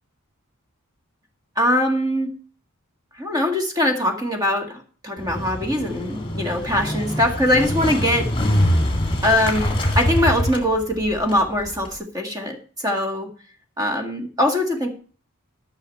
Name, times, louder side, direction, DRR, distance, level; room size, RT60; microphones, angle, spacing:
voice 1, 1.6-2.3 3.2-8.3 9.2-13.3 13.8-14.9, left 1 dB, 15° right, 4 dB, 1.8 m, -22 dB
Motorcycle, 5.2-12.0, equal, 25° left, 2.0 m, -24 dB
13.0 x 6.0 x 5.3 m, 0.40 s
head